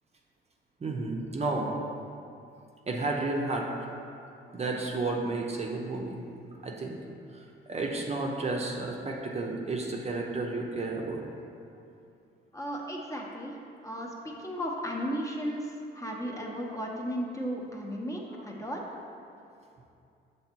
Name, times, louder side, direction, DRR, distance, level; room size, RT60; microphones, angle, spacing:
voice 1, 0.8-1.7 2.9-3.7 4.5-6.2 6.6-7.0 7.3-11.2, right 3 dB, 35° right, 0 dB, 0.7 m, -32 dB
voice 2, 12.5-13.5 13.8-18.8, equal, 15° left, -1 dB, 0.8 m, -35 dB
7.0 x 3.2 x 4.5 m, 2.6 s
cardioid pair, 90°, 20 cm